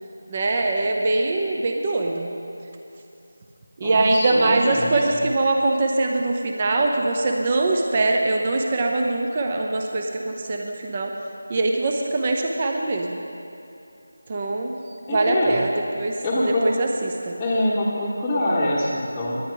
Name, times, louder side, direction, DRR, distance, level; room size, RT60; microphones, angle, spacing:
voice 1, 0.3-2.3 3.8-11.1 11.5-13.2 14.3-14.7 15.1-15.7 16.0-16.2 16.6-17.3, right 2 dB, 25° right, 2 dB, 0.7 m, -22 dB
voice 2, 3.8-5.0 15.1-15.6 16.2-16.7 17.3-19.4, left 1 dB, 5° left, -11 dB, 1.1 m, -24 dB
18.5 x 10.5 x 3.9 m, 2.7 s
figure-of-eight pair, 175°, 0 cm